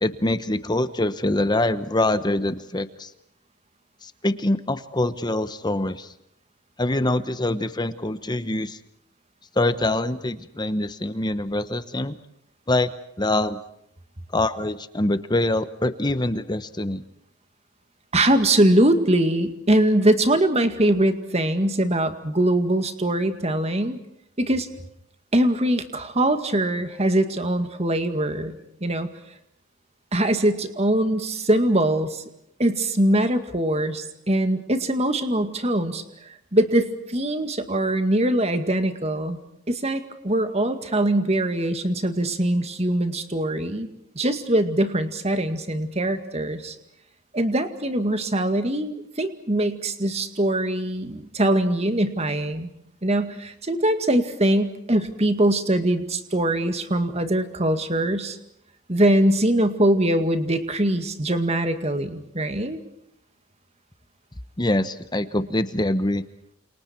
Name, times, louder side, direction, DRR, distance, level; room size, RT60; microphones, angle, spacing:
voice 1, 0.0-3.1 4.0-6.1 6.8-8.8 9.6-12.2 12.7-12.9 13.2-13.6 14.3-17.0 64.6-66.2, left 1 dB, 20° left, 12 dB, 1.0 m, -24 dB
voice 2, 18.1-24.0 24.4-24.7 25.3-29.1 30.1-32.2 32.6-36.0 36.5-39.4 39.7-43.9 44.2-46.8 47.3-52.7 53.0-58.4 58.9-62.8, right 1 dB, 30° right, 8 dB, 2.1 m, -22 dB
29.5 x 28.0 x 4.6 m, 0.78 s
head